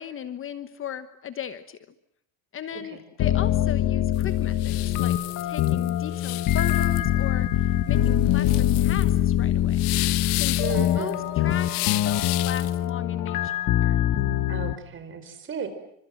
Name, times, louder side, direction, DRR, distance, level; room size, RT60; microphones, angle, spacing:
voice 1, 0.0-1.8 2.5-5.2 5.4-9.8 10.3-13.5 13.8-14.0, left 9 dB, 30° left, 12 dB, 1.2 m, -37 dB
sound 1, 3.2-14.8, left 12 dB, 50° left, 1.5 m, -23 dB
sound 2, 4.1-12.8, left 21 dB, 85° left, 1.1 m, -33 dB
voice 2, 10.6-11.2 14.5-15.7, right 6 dB, 30° right, 9 dB, 4.8 m, -34 dB
29.0 x 26.0 x 7.8 m, 0.74 s
cardioid pair, 165°, 40 cm